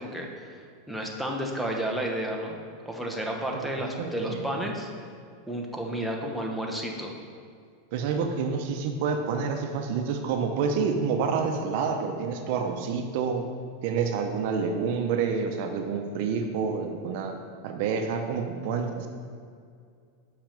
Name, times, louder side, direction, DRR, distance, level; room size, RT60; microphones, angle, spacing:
voice 1, 0.0-2.6 2.8-4.9 5.5-7.1, right 1 dB, ahead, 0 dB, 0.8 m, -32 dB
voice 2, 3.5-4.6 7.9-13.4 13.8-17.4 17.6-19.1, right 5 dB, 60° right, 5 dB, 0.7 m, -28 dB
5.8 x 5.8 x 5.2 m, 2.2 s
supercardioid pair, 140°, 0 cm